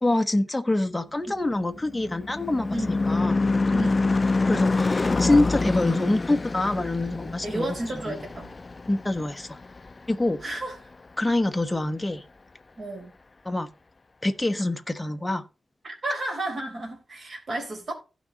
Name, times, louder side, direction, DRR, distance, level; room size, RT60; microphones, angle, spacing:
voice 1, 0.0-3.4 4.4-7.7 8.0-8.2 8.9-9.6 10.1-10.4 11.2-12.2 13.4-13.7 14.2-15.4, left 2 dB, 10° left, 1.1 m, -25 dB
Car passing by / Truck / Engine, 1.5-10.2, left 3 dB, 25° left, 0.4 m, -26 dB
voice 2, 3.7-4.0 7.4-8.5 10.4-10.8 12.8-13.1 15.8-17.9, right 2 dB, 40° right, 4.1 m, -32 dB
16.0 x 6.2 x 2.9 m
wide cardioid pair, 165°, 0 cm